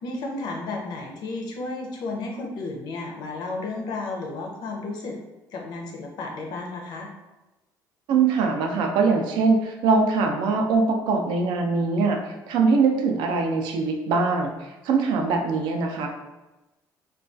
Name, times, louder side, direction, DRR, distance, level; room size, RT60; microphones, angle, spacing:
voice 1, 0.0-5.2 5.5-7.1, left 3 dB, 65° left, 1 dB, 0.5 m, -33 dB
voice 2, 8.1-12.2 12.5-14.5 14.8-16.1, right 4 dB, 80° right, 3 dB, 0.4 m, -22 dB
2.2 x 2.2 x 2.5 m, 1.1 s
cardioid pair, 140°, 8 cm